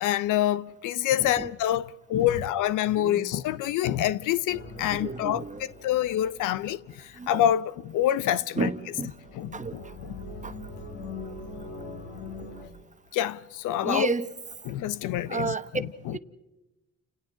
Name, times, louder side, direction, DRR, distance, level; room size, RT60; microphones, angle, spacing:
voice 1, 0.0-8.7 9.3-10.2 13.1-14.1 14.6-16.1, left 12 dB, 85° left, 0.7 m, -27 dB
voice 2, 1.2-1.5 2.9-3.3 4.9-5.7 7.1-7.4 8.6-9.2 9.5-9.9 10.4-10.5 13.8-14.3 15.3-15.7 16.1-16.2, right 4 dB, 25° right, 1.1 m, -32 dB
sound 1, 4.5-7.3 8.9-12.7, left 2 dB, 60° left, 4.9 m, -42 dB
30.0 x 28.0 x 3.9 m
cardioid pair, 90°, 30 cm